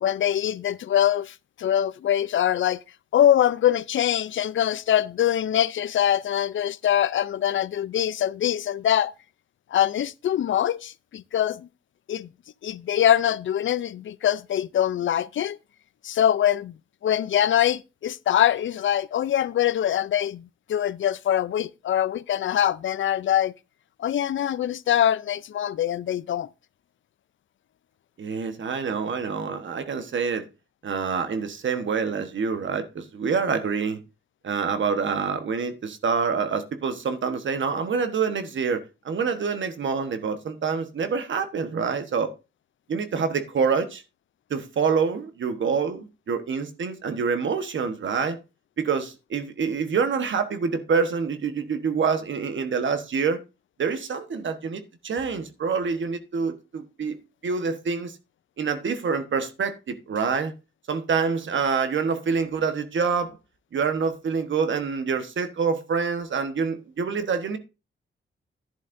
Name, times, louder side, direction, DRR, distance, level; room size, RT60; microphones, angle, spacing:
voice 1, 0.0-2.8 3.1-9.1 9.7-11.7 12.1-12.3 12.6-15.6 16.0-16.7 17.0-23.5 24.0-26.5, left 10 dB, 70° left, 0.5 m, -23 dB
voice 2, 28.2-30.5 30.8-34.0 34.4-42.3 42.9-44.0 44.5-48.4 48.8-53.4 53.8-57.1 57.4-58.2 58.6-60.5 60.9-63.4 63.7-67.6, right 5 dB, 70° right, 1.2 m, -26 dB
11.0 x 10.5 x 2.6 m
cardioid pair, 85°, 21 cm